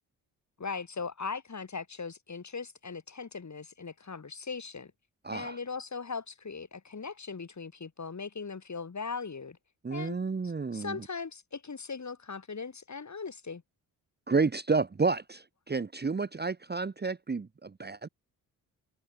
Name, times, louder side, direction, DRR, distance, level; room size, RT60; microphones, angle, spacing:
voice 1, 0.6-4.9 5.3-9.6 9.9-10.2 10.7-13.6, left 5 dB, 40° left, 5.7 m, -39 dB
voice 2, 5.2-5.6 9.8-11.0 14.3-18.1, right 4 dB, 20° right, 1.1 m, -30 dB
supercardioid pair, 50°, 44 cm